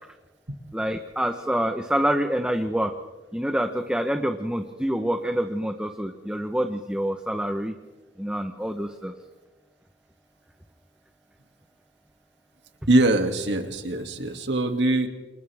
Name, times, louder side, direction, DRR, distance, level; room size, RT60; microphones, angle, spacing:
voice 1, 0.7-2.9 3.3-7.7 8.2-9.1, equal, 5° right, 5 dB, 1.0 m, -26 dB
voice 2, 12.9-15.1, right 2 dB, 75° right, 4 dB, 2.5 m, -22 dB
29.0 x 28.5 x 3.6 m, 1.2 s
head